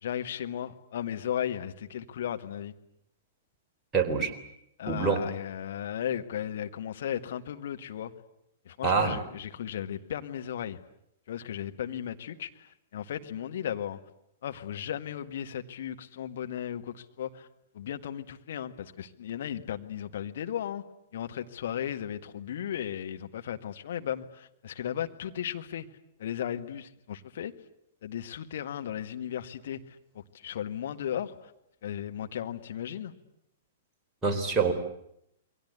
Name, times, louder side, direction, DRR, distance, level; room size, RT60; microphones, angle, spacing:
voice 1, 0.0-2.7 4.8-8.1 8.7-10.8 11.3-14.0 14.4-17.5 17.7-20.8 21.1-25.9 26.2-27.5 28.0-31.5 31.8-33.1, left 10 dB, 55° left, 7 dB, 1.8 m, -35 dB
voice 2, 3.9-4.3 4.9-5.2 8.8-9.2 34.2-34.7, right 5 dB, 15° right, 1 dB, 3.7 m, -25 dB
28.5 x 22.5 x 8.3 m, 0.77 s
figure-of-eight pair, 105°, 0 cm